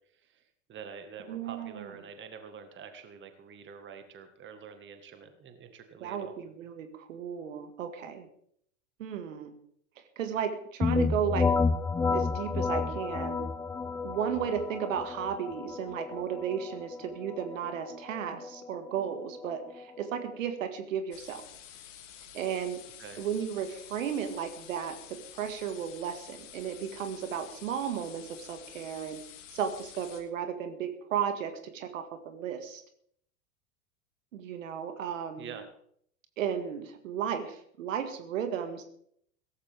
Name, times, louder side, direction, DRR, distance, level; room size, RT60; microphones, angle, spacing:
voice 1, 0.7-6.3 23.0-23.2 35.4-35.7, right 6 dB, 25° right, 8 dB, 1.8 m, -46 dB
voice 2, 1.3-1.9 6.0-8.3 9.0-9.5 10.2-11.5 12.1-13.5 14.0-21.4 22.3-22.8 23.2-29.2 29.5-32.8 34.3-35.5 36.4-38.8, right 8 dB, 65° right, 7 dB, 2.1 m, -34 dB
sound 1, 10.8-20.4, left 4 dB, 5° left, 0.4 m, -31 dB
sound 2, 21.1-30.2, left 10 dB, 60° left, 2.7 m, -49 dB
17.0 x 14.5 x 3.6 m, 0.67 s
figure-of-eight pair, 90°, 41 cm